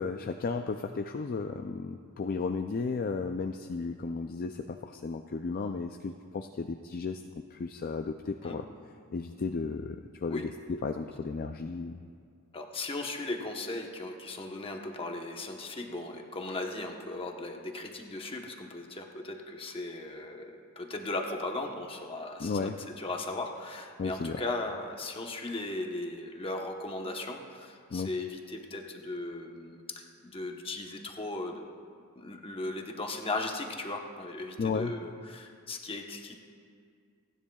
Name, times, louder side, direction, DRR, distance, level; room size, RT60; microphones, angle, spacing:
voice 1, 0.0-7.2 7.5-8.7 9.1-12.0 22.4-22.8 24.0-24.4 27.9-28.1 34.6-34.9, left 4 dB, 40° left, 5 dB, 0.4 m, -34 dB
voice 2, 12.5-31.6 32.2-36.4, left 2 dB, 25° left, 2 dB, 1.0 m, -37 dB
28.5 x 10.0 x 2.3 m, 2.2 s
head